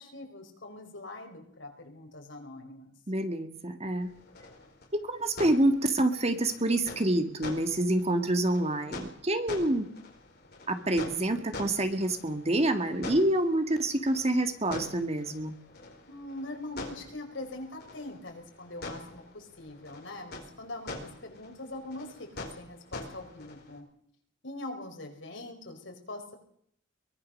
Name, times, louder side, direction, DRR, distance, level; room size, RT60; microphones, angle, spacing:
voice 1, 0.0-2.9 16.1-23.9 24.4-26.4, left 2 dB, 75° left, 3 dB, 5.1 m, -43 dB
voice 2, 3.1-4.1 4.9-9.9 10.7-15.5, right 1 dB, 35° right, 7 dB, 1.9 m, -27 dB
sound 1, 4.0-23.8, left 2 dB, 55° left, 4.6 m, -45 dB
23.0 x 19.5 x 6.6 m, 0.66 s
head